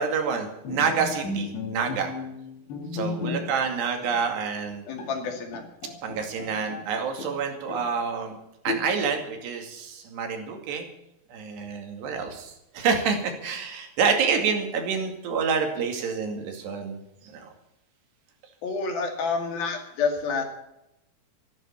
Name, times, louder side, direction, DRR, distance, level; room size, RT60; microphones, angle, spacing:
voice 1, 0.0-2.1 2.9-4.9 6.0-8.4 8.6-10.9 11.3-17.0 17.2-17.5, right 6 dB, 85° right, 4 dB, 4.5 m, -28 dB
Bowed string instrument, 0.7-3.7 4.0-4.2 4.7-4.8 5.0-6.9 7.2-8.0 8.7-9.3, left 3 dB, 85° left, 4.2 m, -35 dB
voice 2, 4.9-5.6 18.6-20.4, left 4 dB, 65° left, 4 dB, 3.9 m, -29 dB
14.0 x 12.5 x 7.3 m, 0.84 s
omnidirectional pair, 4.7 m